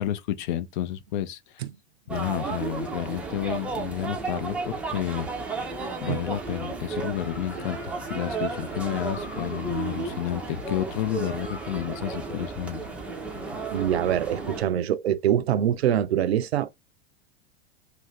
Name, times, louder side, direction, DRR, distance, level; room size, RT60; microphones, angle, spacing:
voice 1, 0.0-1.7 2.1-5.6 6.0-12.9, left 11 dB, 50° left, 0.5 m, -31 dB
sound 1, 2.1-14.6, right 4 dB, 5° right, 0.5 m, -33 dB
sound 2, 7.1-14.5, left 4 dB, 80° left, 1.1 m, -45 dB
voice 2, 13.7-16.7, right 10 dB, 70° right, 0.5 m, -24 dB
2.5 x 2.4 x 3.1 m
figure-of-eight pair, 90°, 33 cm